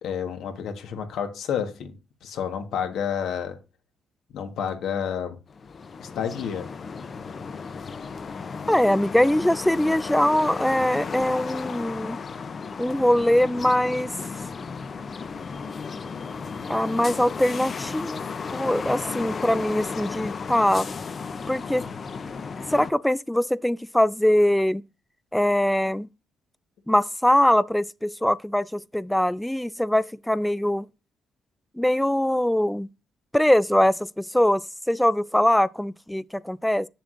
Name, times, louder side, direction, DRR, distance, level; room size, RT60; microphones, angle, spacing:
voice 1, 0.0-1.9 2.2-3.6 4.3-5.4 6.0-6.7, left 8 dB, 75° left, 1.3 m, -30 dB
sound 1, 5.5-22.9, left 5 dB, 45° left, 0.6 m, -34 dB
voice 2, 8.7-12.2 12.8-14.1 16.7-18.2 18.5-20.9 21.5-21.9 22.7-24.8 25.3-26.1 26.9-30.9 31.8-32.9 33.3-34.6 34.9-36.9, left 1 dB, 5° left, 0.3 m, -22 dB
7.4 x 7.0 x 2.5 m
cardioid pair, 90°, 0 cm